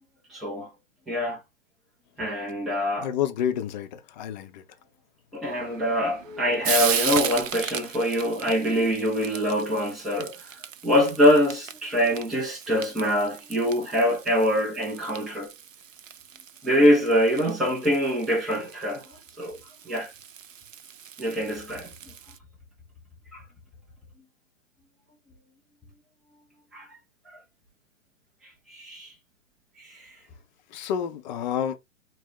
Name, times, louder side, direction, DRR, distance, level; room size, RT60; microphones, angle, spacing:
voice 1, 0.3-0.7 1.1-1.4 2.2-3.1 5.3-15.5 16.6-19.6 19.8-20.1 21.2-21.9 23.3-23.4 26.7-26.9 27.3-27.4 28.4-29.1 29.8-30.2, equal, ahead, 0.4 m, -24 dB
voice 2, 3.0-4.6 30.7-31.8, left 9 dB, 35° left, 0.6 m, -29 dB
Frying (food), 5.4-22.4, right 8 dB, 75° right, 0.6 m, -36 dB
3.9 x 2.1 x 4.2 m
figure-of-eight pair, 120°, 39 cm